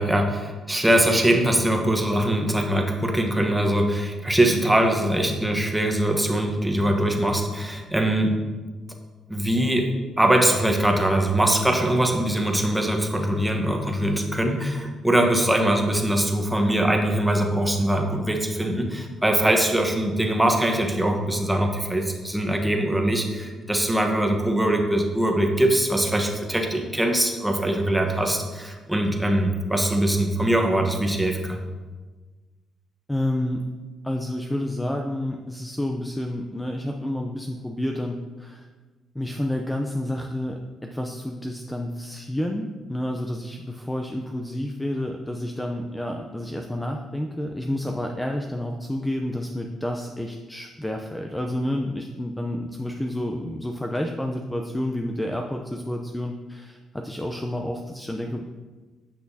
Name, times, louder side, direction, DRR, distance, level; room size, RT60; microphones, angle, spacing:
voice 1, 0.0-8.4 9.3-9.9 10.2-31.6, right 1 dB, 5° right, 2 dB, 1.0 m, -22 dB
voice 2, 33.1-33.7 34.0-38.7 39.1-58.4, left 1 dB, 10° left, 3 dB, 0.5 m, -29 dB
8.4 x 6.0 x 2.7 m, 1.3 s
cardioid pair, 90°, 0 cm